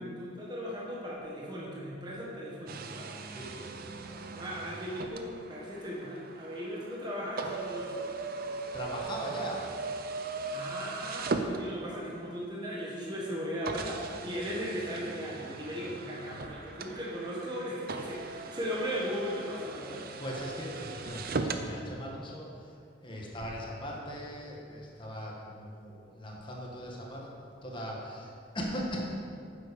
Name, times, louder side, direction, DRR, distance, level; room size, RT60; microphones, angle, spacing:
voice 1, 0.0-3.1 4.3-8.1 10.5-20.1, equal, 25° right, -5 dB, 1.5 m, -37 dB
sound 1, 2.7-12.2 12.9-13.0 13.7-21.7, right 4 dB, 50° right, 0.6 m, -39 dB
voice 2, 3.3-4.2 8.7-9.7 20.2-29.0, equal, 25° left, -2 dB, 1.6 m, -40 dB
9.4 x 7.6 x 5.2 m, 2.4 s
head